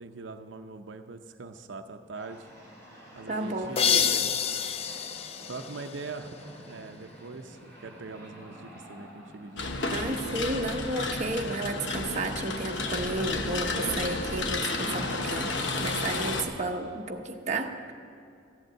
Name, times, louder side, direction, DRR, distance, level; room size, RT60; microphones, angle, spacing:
voice 1, 0.0-2.5 3.1-4.4 5.5-6.4 6.7-10.5, right 3 dB, 80° right, 6 dB, 0.6 m, -42 dB
sound 1, 2.1-15.2, equal, 15° left, 3.7 m, -51 dB
voice 2, 3.3-4.1 9.9-17.9, right 2 dB, 35° right, 2 dB, 0.9 m, -32 dB
sound 2, 3.8-6.5, left 8 dB, 30° left, 0.3 m, -28 dB
sound 3, 9.6-16.4, left 3 dB, 75° left, 1.1 m, -31 dB
14.5 x 8.0 x 8.7 m, 2.5 s
head